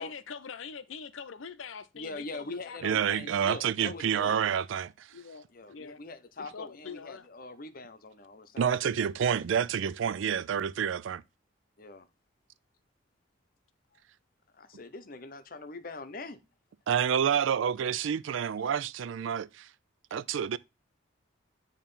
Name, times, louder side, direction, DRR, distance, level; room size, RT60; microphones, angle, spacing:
voice 1, 0.0-3.0 5.1-6.0 6.5-7.3, left 6 dB, 75° left, 0.6 m, -44 dB
voice 2, 1.9-4.4 5.5-9.0 11.8-12.1 13.9-14.0 14.5-16.4, left 3 dB, 45° left, 0.7 m, -42 dB
voice 3, 2.8-5.1 8.6-11.2 16.9-19.7 20.1-20.6, right 8 dB, 70° right, 0.3 m, -28 dB
8.9 x 3.0 x 5.4 m
head